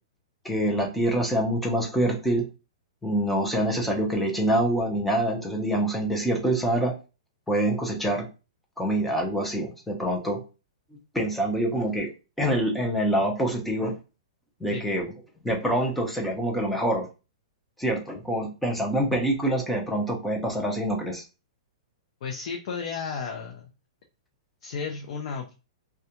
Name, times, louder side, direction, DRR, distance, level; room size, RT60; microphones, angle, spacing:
voice 1, 0.4-2.4 3.0-6.9 7.5-8.3 8.8-10.4 11.1-12.1 12.4-13.9 14.6-15.1 15.4-17.1 17.8-21.2, right 1 dB, 5° left, 0 dB, 0.6 m, -25 dB
voice 2, 22.2-23.7 24.6-25.5, left 5 dB, 55° left, 1 dB, 0.5 m, -33 dB
2.3 x 2.2 x 2.8 m, 0.30 s
hypercardioid pair, 155°, 3 cm